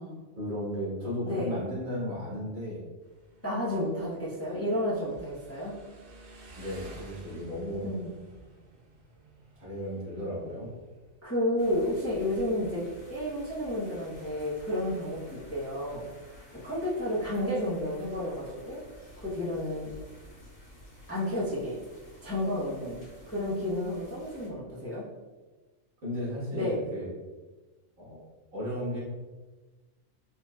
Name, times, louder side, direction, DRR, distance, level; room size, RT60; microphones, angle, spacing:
voice 1, 0.4-2.8 6.6-7.9 9.6-10.7 26.0-27.1 28.0-28.2 28.5-29.0, equal, 85° right, -7 dB, 1.8 m, -34 dB
Motorcycle, 3.0-11.2, right 2 dB, 55° right, 0.8 m, -52 dB
voice 2, 3.4-5.8 7.8-8.1 11.2-16.0 16.6-18.8 19.2-19.9 21.1-21.8 22.2-25.0 26.5-26.8, left 1 dB, 15° left, -8 dB, 0.6 m, -31 dB
sound 1, 11.6-24.5, left 1 dB, 35° left, 1.2 m, -51 dB
4.5 x 2.9 x 2.2 m, 1.3 s
omnidirectional pair, 1.4 m